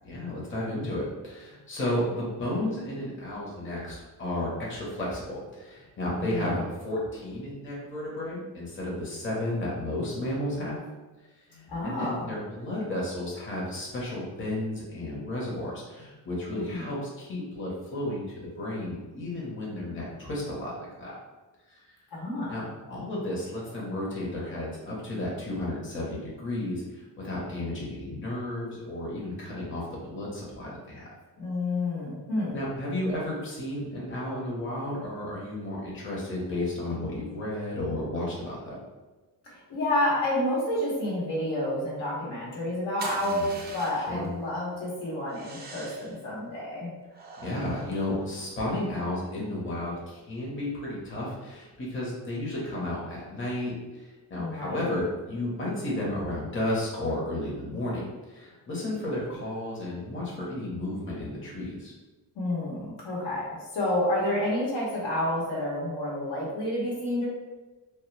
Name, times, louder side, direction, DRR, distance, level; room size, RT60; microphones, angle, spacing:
voice 1, 0.0-10.8 11.5-21.2 21.7-21.8 22.5-31.0 32.5-38.8 43.2-43.5 43.9-44.3 47.4-61.9, left 1 dB, 30° left, -5 dB, 0.9 m, -33 dB
voice 2, 6.1-6.6 11.7-12.3 16.5-16.9 22.1-22.6 31.4-32.6 39.4-46.9 54.4-54.9 62.3-63.5 63.7-67.3, left 1 dB, 70° left, -5 dB, 1.1 m, -29 dB
sound 1, 43.0-44.3 45.3-46.2 47.1-48.8, right 3 dB, 25° right, 0.5 m, -43 dB
2.3 x 2.1 x 3.1 m, 1.2 s
cardioid pair, 80°, 42 cm